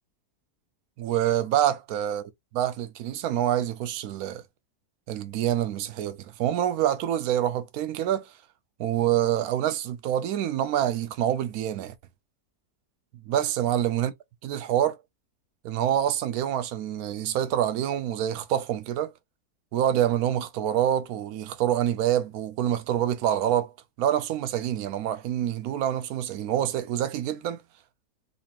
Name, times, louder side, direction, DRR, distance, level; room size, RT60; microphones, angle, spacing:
voice 1, 1.0-4.4 5.1-8.2 8.8-11.9 13.3-14.1 14.4-15.0 15.6-19.1 19.7-23.7 24.0-27.6, right 11 dB, 75° right, 1.1 m, -26 dB
4.1 x 2.7 x 2.8 m
omnidirectional pair, 1.6 m